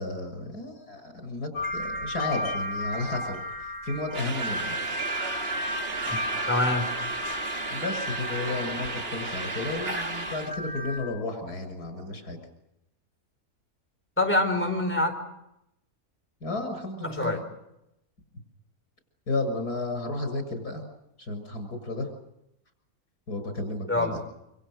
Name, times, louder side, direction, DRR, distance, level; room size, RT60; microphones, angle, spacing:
voice 1, 0.0-3.4 3.8-4.8 7.7-12.4 16.4-17.4 19.3-20.8 21.2-22.1 23.3-24.2, left 2 dB, 80° left, 8 dB, 7.0 m, -33 dB
sound 1, 1.5-11.0, left 1 dB, 55° left, 7.2 m, -34 dB
sound 2, 4.1-10.5, right 3 dB, 40° right, 1.9 m, -34 dB
voice 2, 6.5-6.9 14.2-15.1 17.0-17.4 23.9-24.2, left 2 dB, 5° left, 4 dB, 4.7 m, -25 dB
28.0 x 27.0 x 6.4 m, 0.84 s
omnidirectional pair, 1.6 m